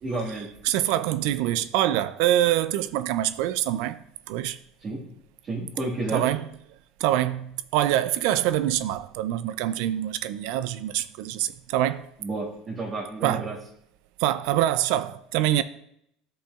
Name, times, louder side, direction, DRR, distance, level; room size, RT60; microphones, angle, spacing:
voice 1, 0.0-0.5 4.8-5.0 5.4-6.3 12.2-13.6, right 2 dB, 35° right, 1.6 m, -31 dB
voice 2, 0.6-4.0 4.3-4.6 6.1-6.5 7.0-12.1 13.2-13.5 14.2-15.6, right 13 dB, 70° right, 0.3 m, -25 dB
9.8 x 6.0 x 2.3 m
supercardioid pair, 125°, 0 cm